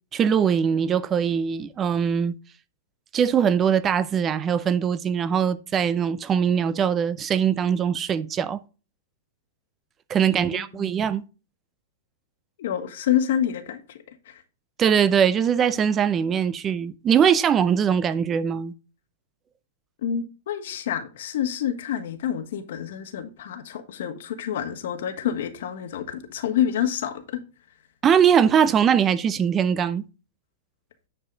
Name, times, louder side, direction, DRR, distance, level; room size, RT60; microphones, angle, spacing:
voice 1, 0.1-2.3 3.1-8.6 10.1-11.2 14.8-18.7 28.0-30.0, right 8 dB, 25° right, 0.5 m, -21 dB
voice 2, 10.2-10.9 12.6-14.0 20.0-27.4, left 10 dB, 70° left, 1.5 m, -28 dB
9.7 x 4.8 x 3.9 m
hypercardioid pair, 135°, 0 cm